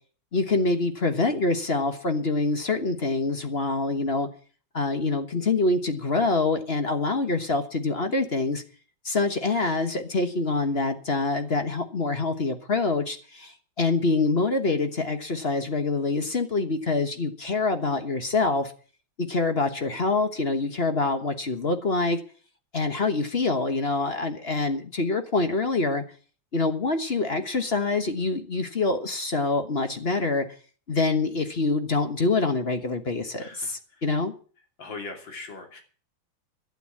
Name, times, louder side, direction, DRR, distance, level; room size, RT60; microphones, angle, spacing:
voice 1, 0.3-4.3 4.7-8.6 9.0-18.7 19.2-22.2 22.7-26.0 26.5-30.5 30.9-34.3, left 3 dB, 35° left, 7 dB, 1.2 m, -25 dB
voice 2, 33.4-33.7 34.8-35.8, left 3 dB, 65° left, 4 dB, 3.5 m, -39 dB
12.0 x 9.2 x 8.5 m, 0.41 s
omnidirectional pair, 2.3 m